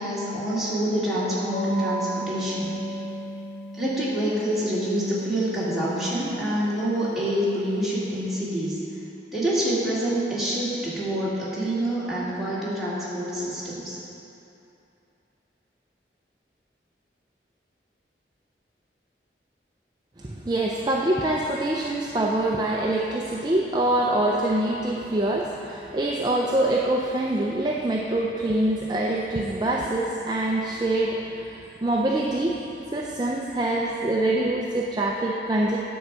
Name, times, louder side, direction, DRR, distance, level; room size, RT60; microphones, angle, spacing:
voice 1, 0.0-2.7 3.7-8.8 9.3-14.0, right 1 dB, ahead, -10 dB, 2.1 m, -26 dB
sound 1, 1.5-7.7, right 1 dB, 65° left, 2.1 m, -34 dB
voice 2, 20.2-32.6 32.9-35.8, right 1 dB, 25° right, -2 dB, 0.4 m, -25 dB
9.4 x 4.7 x 6.8 m, 2.8 s
head